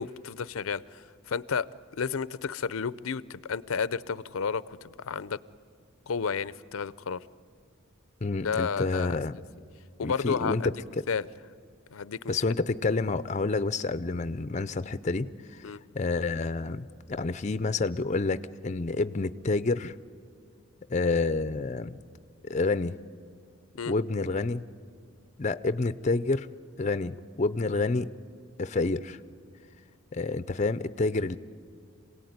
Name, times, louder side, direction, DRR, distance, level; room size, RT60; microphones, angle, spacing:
voice 1, 0.0-5.4 6.1-7.2 8.4-9.2 10.0-10.6 11.1-11.3 11.9-12.3 15.6-15.8 23.8-24.0, left 6 dB, 85° left, 18 dB, 0.6 m, -32 dB
voice 2, 8.2-9.4 10.0-11.0 12.3-15.6 15.9-19.9 20.9-22.0 22.5-23.0 23.9-24.7 25.4-26.5 26.8-28.1 28.6-29.2 30.1-31.4, left 3 dB, 35° left, 14 dB, 0.5 m, -28 dB
27.0 x 17.5 x 9.4 m, 2.3 s
head